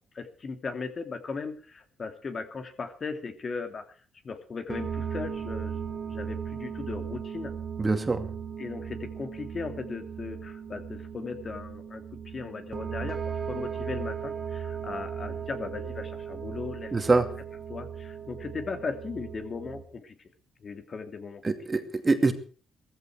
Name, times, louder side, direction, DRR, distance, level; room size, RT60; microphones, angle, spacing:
voice 1, 0.1-4.0 4.2-7.5 8.6-17.2 17.7-20.1 20.6-21.4, left 4 dB, 40° left, 7 dB, 2.8 m, -37 dB
sound 1, 4.7-19.8, right 7 dB, 40° right, 2.6 m, -37 dB
voice 2, 7.8-8.3 16.9-17.2 21.4-22.3, right 3 dB, 25° right, 8 dB, 2.4 m, -24 dB
17.0 x 14.5 x 4.7 m, 0.41 s
cardioid pair, 90°, 0 cm